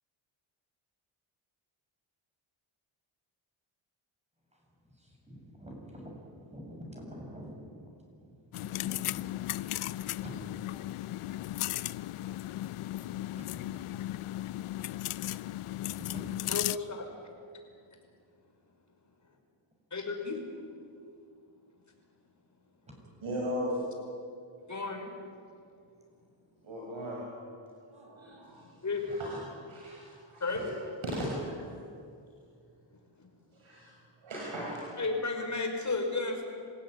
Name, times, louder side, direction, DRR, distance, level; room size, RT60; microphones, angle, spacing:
voice 1, 4.9-7.8 8.2-10.3 10.7-10.8 13.3-13.8 14.9-15.0 15.7-16.2 22.9-23.0 28.0-28.1 29.1-29.4 29.8-30.1 33.7-33.8, equal, 15° right, 0 dB, 7.8 m, -48 dB
sound 1, 8.5-16.8, left 15 dB, 80° left, 0.6 m, -36 dB
voice 2, 16.5-17.0 19.9-20.4 24.7-25.1 28.5-29.0 30.4-30.6 33.2-33.3 35.0-36.4, left 3 dB, 35° left, 2 dB, 5.6 m, -33 dB
voice 3, 23.2-23.9 26.6-27.3 27.9-28.6 29.2-29.4 29.7-30.7 31.0-31.6 33.5-33.9 34.2-35.0, equal, 65° right, -3 dB, 6.2 m, -37 dB
27.0 x 16.5 x 9.6 m, 2.4 s
cardioid pair, 90°, 50 cm